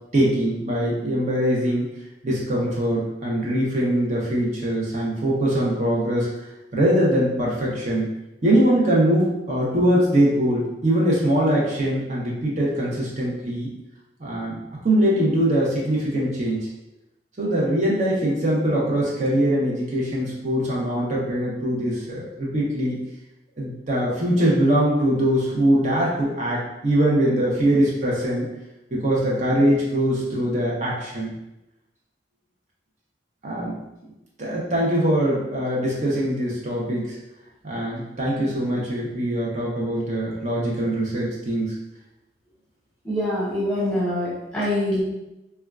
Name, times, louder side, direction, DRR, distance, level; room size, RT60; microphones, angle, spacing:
voice 1, 0.1-1.9 2.2-6.3 6.7-8.1 8.4-13.7 14.2-14.6 14.8-16.7 17.4-23.0 23.6-28.5 28.9-31.3 33.4-33.7 34.4-37.2 37.6-41.7, right 1 dB, 40° right, -5 dB, 0.7 m, -22 dB
voice 2, 43.0-45.0, left 1 dB, 5° left, -8 dB, 1.1 m, -24 dB
4.2 x 2.2 x 2.4 m, 0.94 s
head